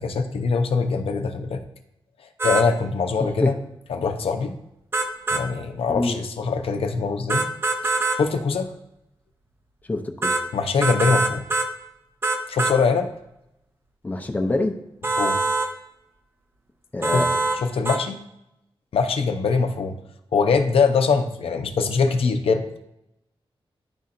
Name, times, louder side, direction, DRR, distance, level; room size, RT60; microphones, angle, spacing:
voice 1, 0.0-1.6 2.4-3.5 3.9-4.5 5.3-7.4 7.8-8.7 10.5-11.4 12.5-13.1 15.2-15.4 17.1-17.2 17.6-18.2 18.9-19.9 20.3-22.8, left 5 dB, 85° left, 6 dB, 0.6 m, -23 dB
sound 1, 2.4-2.7 4.9-5.4 7.3-8.2 10.2-10.4 10.8-11.7 12.2-12.8 15.0-15.7 17.0-17.6 17.8-18.0, right 3 dB, 25° right, 0.5 m, -23 dB
voice 2, 3.2-3.5 5.9-6.1 9.9-10.4 14.0-14.7 16.9-17.3, left 2 dB, 15° left, 4 dB, 0.6 m, -25 dB
10.5 x 4.1 x 2.5 m, 0.84 s
wide cardioid pair, 170°, 10 cm